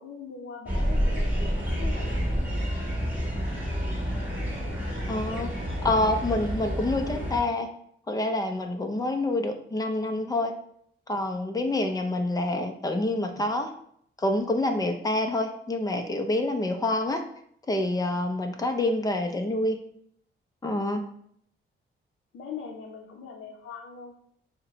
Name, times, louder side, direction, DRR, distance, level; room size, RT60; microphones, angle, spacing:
voice 1, 0.0-2.7 18.5-18.9 22.3-24.4, left 6 dB, 75° left, 0 dB, 0.6 m, -42 dB
sound 1, 0.7-7.4, equal, 10° right, 1.4 m, -29 dB
voice 2, 5.1-5.5 5.8-7.7 8.1-10.5 11.1-13.7 14.2-17.2 17.7-19.8 20.6-21.0, left 2 dB, 15° left, 5 dB, 0.5 m, -27 dB
6.3 x 2.2 x 3.8 m, 0.68 s
wide cardioid pair, 145°, 21 cm